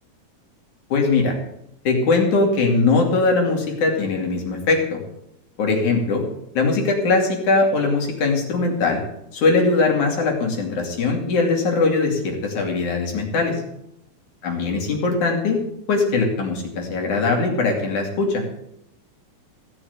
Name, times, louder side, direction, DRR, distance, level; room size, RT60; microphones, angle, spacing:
voice 1, 0.9-1.4 1.9-5.0 5.6-6.2 6.6-9.0 9.3-13.6 14.4-15.6 15.9-18.4, left 3 dB, 70° left, 1 dB, 4.1 m, -20 dB
16.5 x 6.9 x 8.0 m, 0.80 s
omnidirectional pair, 3.5 m